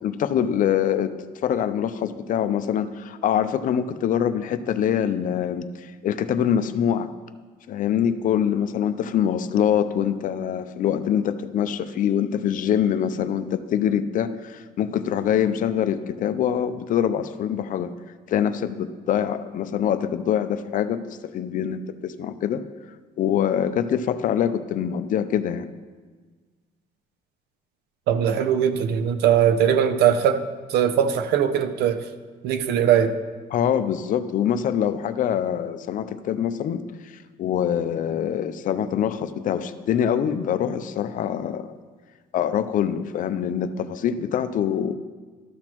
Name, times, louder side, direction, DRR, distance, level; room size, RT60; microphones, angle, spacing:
voice 1, 0.0-1.1 1.4-7.1 7.7-17.9 18.3-22.6 23.2-25.7 33.5-37.1 37.4-41.7 42.3-45.0, left 9 dB, 50° left, 11 dB, 0.5 m, -24 dB
voice 2, 28.1-30.4 30.7-32.0 32.4-33.1, right 9 dB, 75° right, 10 dB, 0.6 m, -20 dB
13.0 x 6.0 x 3.0 m, 1.4 s
cardioid pair, 110°, 17 cm